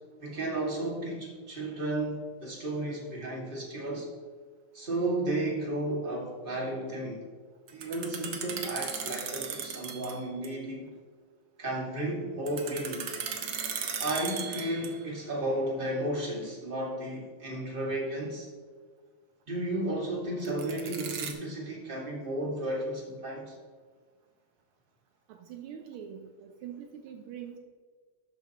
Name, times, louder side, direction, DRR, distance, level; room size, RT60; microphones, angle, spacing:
voice 1, 0.2-4.1 4.7-7.3 7.7-10.9 11.6-13.1 14.0-18.5 19.5-23.6, right 1 dB, 25° right, -3 dB, 2.3 m, -33 dB
sound 1, 7.7-10.2 10.4-10.5 12.5-15.1 20.5-21.3, right 6 dB, 60° right, 1.6 m, -36 dB
voice 2, 25.3-27.6, right 8 dB, 75° right, 5 dB, 1.6 m, -43 dB
12.5 x 9.1 x 3.0 m, 1.5 s
omnidirectional pair, 2.4 m